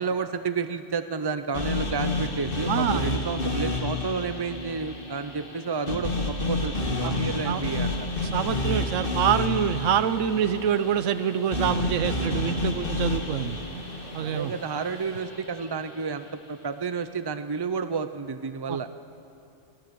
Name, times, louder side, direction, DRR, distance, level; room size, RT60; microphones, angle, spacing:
voice 1, 0.0-7.9 14.2-18.9, right 5 dB, 40° right, 10 dB, 0.3 m, -31 dB
sound 1, 1.5-15.7, left 2 dB, 45° left, 2.0 m, -30 dB
voice 2, 2.7-3.0 7.0-7.2 7.4-7.6 8.3-13.6 14.1-14.5 18.7-18.8, right 9 dB, 85° right, 13 dB, 1.1 m, -26 dB
sound 2, 7.3-15.2, equal, 75° left, 5.1 m, -48 dB
24.0 x 15.5 x 7.6 m, 2.7 s
omnidirectional pair, 1.3 m